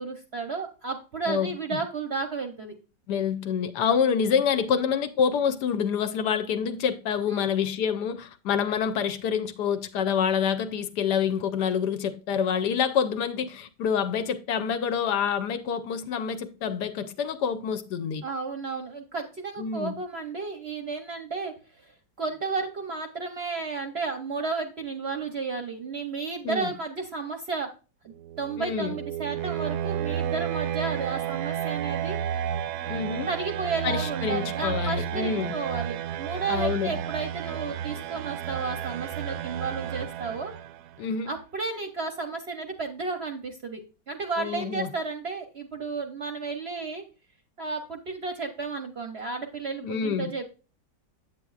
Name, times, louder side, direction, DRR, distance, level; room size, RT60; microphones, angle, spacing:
voice 1, 0.0-2.7 7.3-7.5 18.2-21.9 22.2-27.7 28.4-32.2 33.3-40.5 41.3-43.8 44.1-47.0 47.6-50.4, right 4 dB, 50° right, 0.8 m, -33 dB
voice 2, 1.3-1.8 3.1-18.2 19.6-19.9 26.4-26.7 28.6-29.0 32.9-33.3 33.8-35.5 36.5-36.9 41.0-41.3 44.4-44.9 49.8-50.3, left 7 dB, 75° left, 1.2 m, -27 dB
sound 1, 28.1-41.0, right 10 dB, 70° right, 1.0 m, -32 dB
8.3 x 8.2 x 2.4 m
omnidirectional pair, 1.9 m